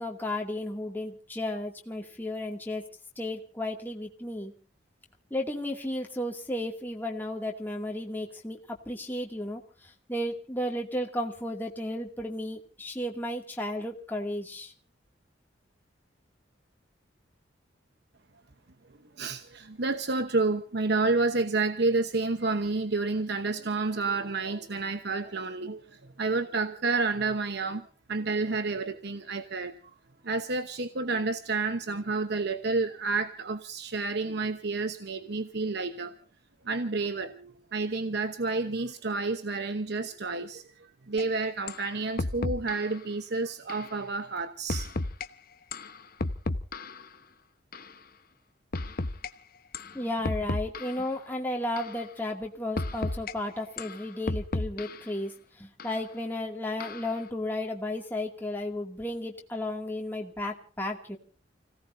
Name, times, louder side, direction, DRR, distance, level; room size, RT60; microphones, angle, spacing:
voice 1, 0.0-2.8 3.2-4.5 5.3-9.6 10.1-14.7 49.9-61.2, left 1 dB, 10° left, 2.4 m, -33 dB
voice 2, 19.2-25.8 26.2-27.8 28.1-29.7 30.2-36.1 36.7-40.6 41.1-44.9, right 3 dB, 60° right, 1.0 m, -30 dB
sound 1, 41.2-41.3 41.7-41.9 42.2-42.9 43.7-43.9 44.7-45.3 45.7-47.1 47.7-47.9 48.7-49.3 49.7-49.9 50.2-51.1 51.8-52.0 52.8-53.3 53.8-55.1 55.8-56.0 56.8-57.2, left 2 dB, 50° left, 1.0 m, -33 dB
29.5 x 17.5 x 2.7 m
head